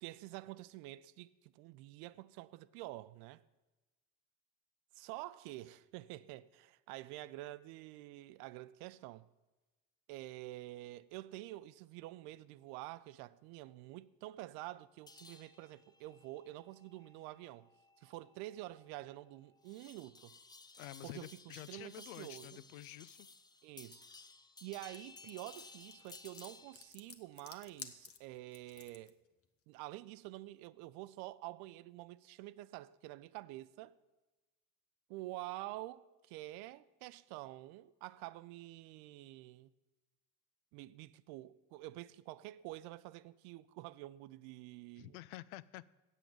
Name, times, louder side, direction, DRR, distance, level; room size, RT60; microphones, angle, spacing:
voice 1, 0.0-3.4 4.9-9.3 10.1-17.7 18.0-20.4 21.0-22.6 23.6-24.0 24.6-29.2 29.7-33.9 35.1-39.7 40.7-45.2, right 17 dB, 55° right, 0.5 m, -48 dB
sound 1, 15.1-26.9, left 3 dB, 10° left, 0.5 m, -58 dB
voice 2, 20.8-23.3 45.0-45.9, left 16 dB, 70° left, 0.5 m, -49 dB
sound 2, 24.9-29.1, left 6 dB, 30° left, 1.1 m, -52 dB
8.1 x 8.1 x 9.0 m
figure-of-eight pair, 55°, 45 cm